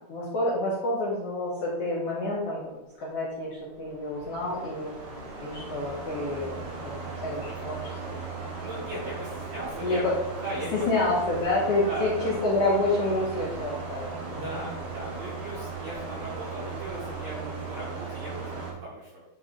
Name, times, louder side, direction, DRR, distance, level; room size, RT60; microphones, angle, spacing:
voice 1, 0.1-4.9 5.4-6.9 7.2-8.1 9.8-10.1 10.7-14.6, left 2 dB, 85° left, -5 dB, 1.3 m, -28 dB
sound 1, 3.7-18.7, right 4 dB, 55° right, 2.9 m, -37 dB
voice 2, 8.6-10.0 10.4-10.9 11.9-12.3 14.2-19.2, right 1 dB, 80° right, -5 dB, 1.5 m, -38 dB
10.0 x 4.1 x 3.8 m, 0.97 s
omnidirectional pair, 4.8 m